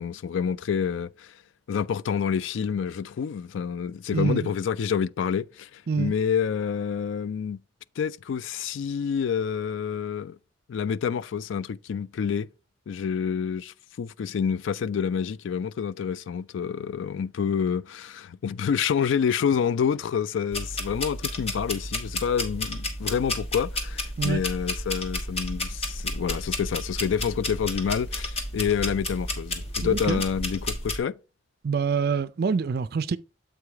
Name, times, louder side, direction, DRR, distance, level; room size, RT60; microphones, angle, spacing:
voice 1, 0.0-1.4 1.7-7.6 8.0-10.4 10.7-12.5 12.9-31.1, left 7 dB, 70° left, 0.3 m, -28 dB
voice 2, 4.1-4.5 5.9-6.1 24.2-24.4 29.8-30.2 31.6-33.2, right 5 dB, 50° right, 0.4 m, -26 dB
sound 1, 20.5-31.0, left 1 dB, 30° left, 1.2 m, -32 dB
7.7 x 4.8 x 3.4 m
head